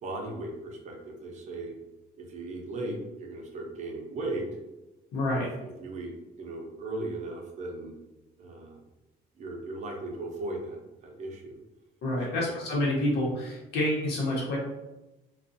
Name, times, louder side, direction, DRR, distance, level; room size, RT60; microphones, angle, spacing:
voice 1, 0.0-1.7 2.2-4.5 5.3-7.9 8.4-8.8 9.4-11.6 12.2-12.5, right 2 dB, 45° right, 1 dB, 0.7 m, -37 dB
voice 2, 5.1-5.5 12.0-14.6, left 1 dB, 75° left, -5 dB, 0.9 m, -28 dB
2.5 x 2.3 x 2.6 m, 1.0 s
cardioid pair, 110°, 17 cm